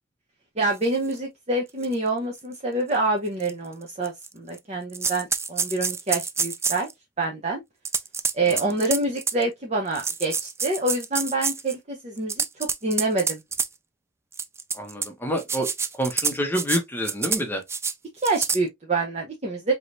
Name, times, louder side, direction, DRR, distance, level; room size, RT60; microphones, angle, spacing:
voice 1, 0.6-6.9 7.2-7.6 8.3-13.4 18.2-19.7, right 2 dB, 35° right, 0.9 m, -26 dB
sound 1, 1.1-1.2 1.8-1.9 2.4-2.5 3.4-3.5 4.0-4.6 4.9-6.9 7.8-9.4 9.9-11.7 12.2-13.7 14.3-15.1 15.4-16.8 17.0-17.4 17.7-17.9 18.2-18.6, right 5 dB, 15° right, 0.3 m, -27 dB
voice 2, 14.7-15.7 16.0-17.6, equal, 10° left, 1.0 m, -27 dB
4.9 x 3.1 x 2.6 m
head